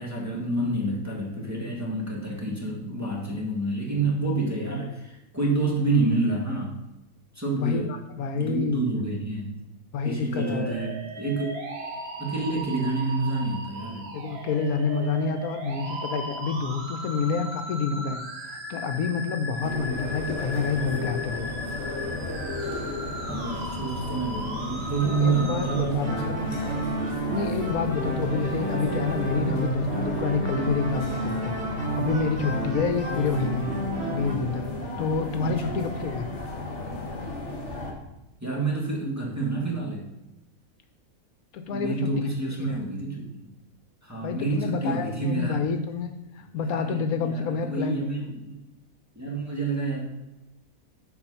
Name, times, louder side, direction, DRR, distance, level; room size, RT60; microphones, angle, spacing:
voice 1, 0.0-6.7 7.3-7.9 8.3-9.5 10.0-11.5 12.2-14.1 23.3-26.9 35.4-35.8 38.4-40.0 41.7-43.5 44.0-45.6 46.7-48.6 49.1-50.0, right 3 dB, 10° right, -4 dB, 1.7 m, -28 dB
voice 2, 7.6-8.8 9.9-10.7 14.1-18.2 18.5-21.5 25.0-26.5 27.3-33.7 34.1-36.3 41.5-42.1 42.6-42.7 44.2-48.0, left 5 dB, 80° left, 7 dB, 1.2 m, -28 dB
sound 1, 10.3-25.8, right 1 dB, 50° right, 1.1 m, -37 dB
sound 2, 19.6-37.9, left 2 dB, 50° left, 1.7 m, -34 dB
sound 3, 26.0-34.3, right 2 dB, 85° right, 2.4 m, -30 dB
7.2 x 4.9 x 5.5 m, 1.0 s
omnidirectional pair, 1.5 m